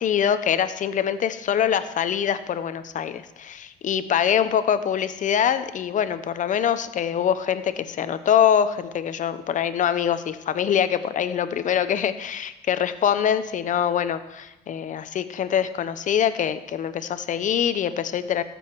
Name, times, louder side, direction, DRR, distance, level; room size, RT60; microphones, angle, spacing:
voice 1, 0.0-18.4, left 9 dB, 50° left, 11 dB, 0.8 m, -24 dB
17.5 x 8.0 x 4.7 m, 0.98 s
cardioid pair, 110°, 17 cm